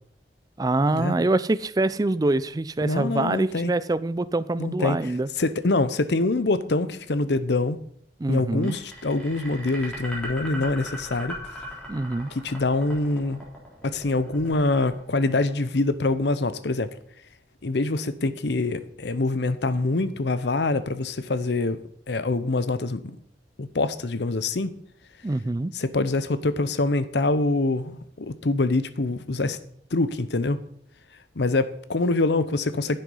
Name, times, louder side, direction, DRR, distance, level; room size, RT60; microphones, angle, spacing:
voice 1, 0.6-5.3 8.2-8.8 11.9-12.3 25.2-25.7, right 2 dB, 20° right, 0.4 m, -25 dB
voice 2, 2.8-3.7 4.6-7.8 8.3-11.4 12.3-13.4 13.8-16.9 17.6-21.8 22.1-23.0 23.6-24.7 25.7-29.6 29.9-30.6 31.4-33.0, left 2 dB, 70° left, 0.8 m, -25 dB
sound 1, 8.6-15.8, equal, 5° left, 3.6 m, -39 dB
10.5 x 7.8 x 5.4 m
head